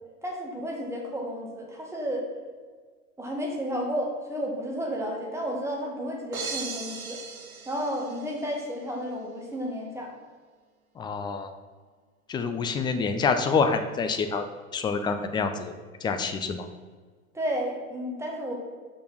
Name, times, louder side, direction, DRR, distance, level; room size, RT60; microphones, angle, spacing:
voice 1, 0.2-2.3 3.2-7.2 7.6-10.1 17.3-18.5, equal, 5° right, -1 dB, 1.8 m, -32 dB
sound 1, 6.3-8.6, right 5 dB, 75° right, 1.1 m, -37 dB
voice 2, 11.0-11.5 12.3-14.4 14.7-15.7 16.0-16.6, left 5 dB, 10° left, 7 dB, 0.4 m, -27 dB
6.1 x 5.8 x 6.1 m, 1.5 s
figure-of-eight pair, 85°, 42 cm